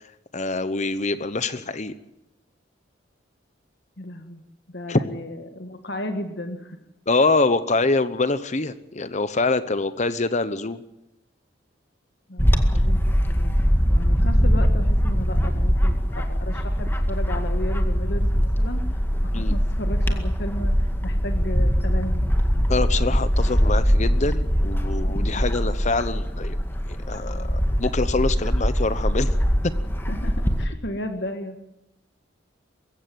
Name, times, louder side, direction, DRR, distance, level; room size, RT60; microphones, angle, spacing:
voice 1, 0.3-1.9 4.9-5.0 7.1-10.8 19.3-19.6 22.7-26.6 26.9-29.4, left 3 dB, 40° left, 13 dB, 0.9 m, -25 dB
voice 2, 4.0-4.4 4.7-6.8 12.3-19.0 19.4-22.2 30.1-31.6, left 1 dB, 60° left, 6 dB, 1.9 m, -34 dB
Bird / Wind, 12.4-30.6, equal, 10° left, 2.0 m, -22 dB
22.0 x 16.0 x 9.4 m, 0.88 s
head